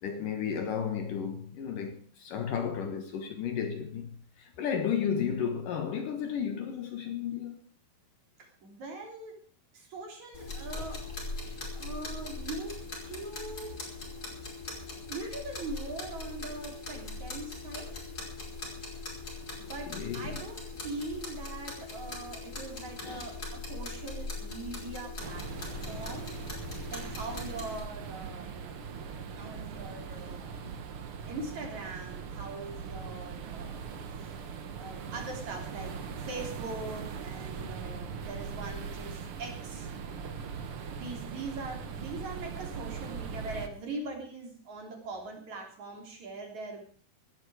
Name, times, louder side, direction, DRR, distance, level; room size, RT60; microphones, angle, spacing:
voice 1, 0.0-4.1 4.4-7.6 19.9-20.4 23.0-23.3, left 7 dB, 65° left, 2.6 m, -33 dB
voice 2, 8.4-9.4 9.7-11.0 11.7-12.8 13.1-13.7 15.1-17.9 19.6-26.3 26.9-28.7 29.3-30.7 31.3-33.8 34.1-34.3 34.8-39.9 40.9-46.8, right 3 dB, 45° right, 4.4 m, -41 dB
sound 1, 10.3-27.8, left 3 dB, 20° left, 5.6 m, -40 dB
sound 2, 25.2-43.7, right 6 dB, 80° right, 1.2 m, -40 dB
16.5 x 13.0 x 4.9 m
omnidirectional pair, 4.7 m